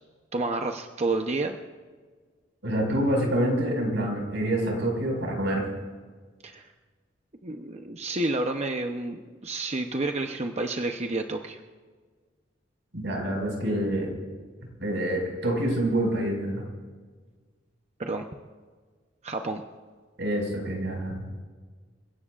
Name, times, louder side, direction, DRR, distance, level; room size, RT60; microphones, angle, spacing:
voice 1, 0.3-1.6 6.4-6.7 7.4-11.6 18.0-18.2 19.2-19.6, right 2 dB, 35° right, 5 dB, 0.8 m, -30 dB
voice 2, 2.6-5.6 12.9-14.1 14.8-16.6 20.2-21.4, right 1 dB, 85° right, 0 dB, 5.4 m, -27 dB
28.5 x 16.5 x 2.5 m, 1.5 s
head